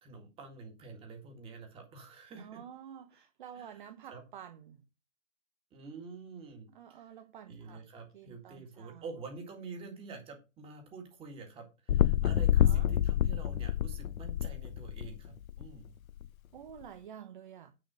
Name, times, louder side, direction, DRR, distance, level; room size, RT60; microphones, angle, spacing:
voice 1, 0.0-2.6 3.5-4.2 5.7-7.1 7.5-15.9, right 4 dB, 15° right, 1.9 m, -47 dB
voice 2, 2.4-4.8 6.7-7.8 8.1-9.0 12.3-12.9 16.5-17.7, right 9 dB, 40° right, 0.9 m, -50 dB
sound 1, 11.9-15.6 16.2-16.3, left 11 dB, 85° left, 0.6 m, -28 dB
8.8 x 5.4 x 6.3 m
hypercardioid pair, 145°, 40 cm